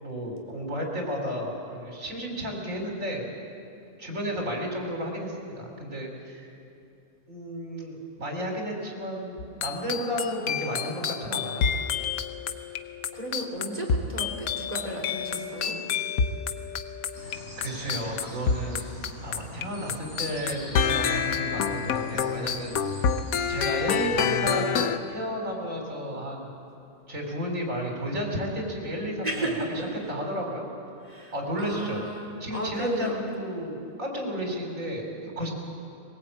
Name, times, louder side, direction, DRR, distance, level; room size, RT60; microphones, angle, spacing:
voice 1, 0.0-3.3 4.0-6.5 7.3-11.7 17.2-18.9 19.2-22.7 23.5-26.5 27.1-29.5 30.1-30.7 31.3-32.0 32.4-35.5, equal, 65° right, 0 dB, 4.8 m, -32 dB
sound 1, 9.4-19.6 19.9-25.0, left 6 dB, 85° left, 1.3 m, -28 dB
voice 2, 13.1-15.8 29.2-29.9 31.0-33.2, right 1 dB, 25° right, -1 dB, 3.9 m, -34 dB
sound 2, 17.1-24.3, left 1 dB, 55° left, 6.4 m, -43 dB
22.5 x 19.5 x 8.7 m, 2.5 s
omnidirectional pair, 1.5 m